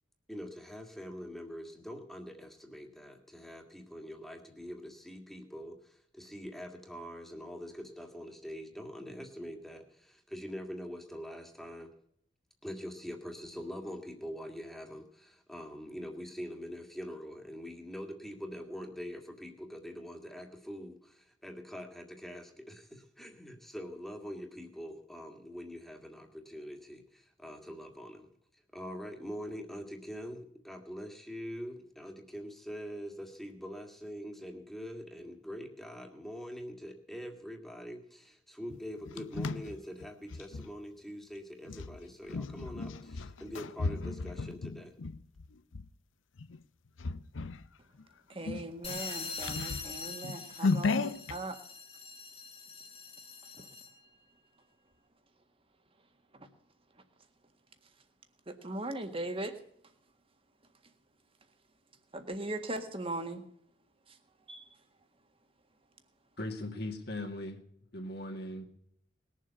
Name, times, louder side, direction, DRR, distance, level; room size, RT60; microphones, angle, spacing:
voice 1, 0.3-11.9 12.6-44.9, equal, ahead, 3 dB, 2.0 m, -44 dB
sound 1, 38.7-40.7 41.7-45.9 46.4-46.6 47.0-47.7 48.0-48.1 48.4-51.4, left 3 dB, 85° left, 0.6 m, -35 dB
voice 2, 48.3-51.6 53.6-53.7 56.3-56.5 58.5-59.6 62.1-63.4 64.1-64.2 64.5-64.7, right 2 dB, 30° right, 7 dB, 1.7 m, -39 dB
sound 2, 48.8-54.1, left 4 dB, 30° left, 1.6 m, -43 dB
voice 3, 66.4-67.6 67.9-68.6, left 1 dB, 60° left, 4 dB, 2.2 m, -38 dB
20.0 x 7.5 x 8.2 m, 0.66 s
head